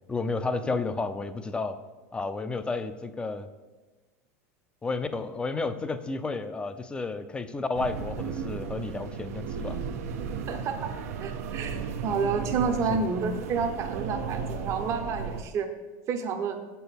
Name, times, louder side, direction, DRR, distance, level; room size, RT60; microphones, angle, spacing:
voice 1, 0.1-1.8 2.1-3.5 4.8-9.8 12.9-13.0, left 3 dB, 10° left, 10 dB, 0.5 m, -31 dB
sound 1, 7.7-15.4, right 6 dB, 80° right, 0.7 m, -34 dB
voice 2, 10.5-10.8 11.2-15.7 16.1-16.6, right 5 dB, 40° right, 5 dB, 0.7 m, -29 dB
7.1 x 4.5 x 6.9 m, 1.2 s
supercardioid pair, 130°, 8 cm